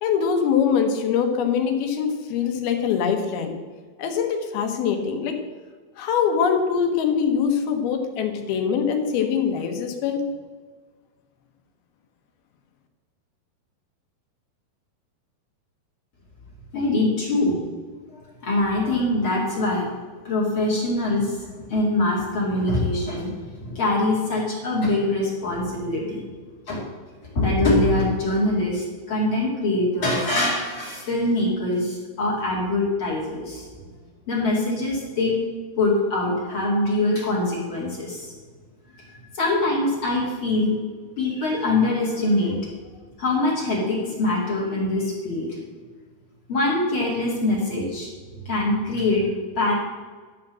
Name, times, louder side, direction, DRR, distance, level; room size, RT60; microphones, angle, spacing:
voice 1, 0.0-3.6 4.0-5.4 6.0-10.2, left 7 dB, 75° left, 5 dB, 2.9 m, -23 dB
voice 2, 16.7-17.6 18.4-19.8 20.2-23.3 23.6-26.2 26.7-26.9 27.3-33.7 34.3-35.4 35.8-38.3 39.1-40.7 41.2-42.9 43.2-45.5 46.5-48.1 48.5-49.3 49.6-49.7, left 2 dB, 40° left, -4 dB, 2.4 m, -23 dB
11.5 x 5.1 x 7.4 m, 1.5 s
omnidirectional pair, 4.6 m